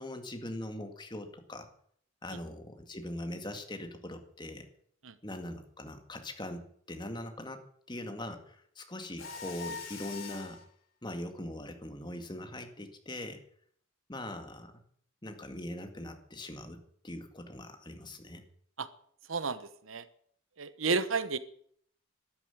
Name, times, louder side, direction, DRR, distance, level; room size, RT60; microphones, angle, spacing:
voice 1, 0.0-1.7 2.2-4.7 5.2-7.6 7.9-10.6 11.0-13.4 14.1-14.7 15.2-16.8 17.0-18.4, left 1 dB, 20° left, 6 dB, 2.0 m, -41 dB
Mechanisms, 9.2-10.6, left 5 dB, 70° left, 4.4 m, -42 dB
voice 2, 19.3-20.1 20.6-21.4, right 4 dB, 75° right, 14 dB, 1.1 m, -32 dB
13.0 x 11.0 x 9.5 m, 0.62 s
head